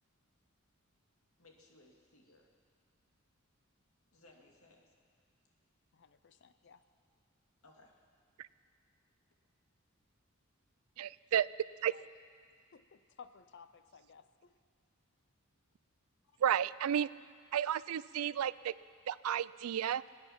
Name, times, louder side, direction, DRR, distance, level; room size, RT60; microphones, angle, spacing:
voice 1, 1.4-2.5 4.1-4.9 7.6-8.0 16.2-16.4, left 2 dB, 90° left, 0 dB, 2.1 m, -63 dB
voice 2, 5.9-6.8 11.9-12.1 12.7-14.5, left 6 dB, 55° left, 12 dB, 0.6 m, -57 dB
voice 3, 11.0-11.5 11.8-11.9 16.4-17.1 17.5-18.7 19.1-20.0, right 9 dB, 90° right, 19 dB, 0.3 m, -32 dB
23.0 x 9.5 x 5.8 m, 2.1 s
head